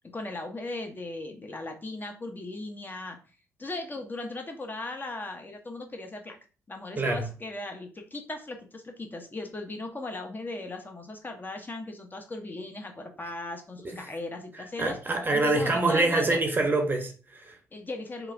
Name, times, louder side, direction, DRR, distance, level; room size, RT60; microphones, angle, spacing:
voice 1, 0.1-3.2 3.6-6.4 6.7-16.4 17.7-18.3, left 2 dB, 25° left, 0.6 m, -37 dB
voice 2, 14.8-17.6, right 2 dB, 25° right, 0.7 m, -25 dB
3.0 x 2.3 x 2.4 m
figure-of-eight pair, 45°, 8 cm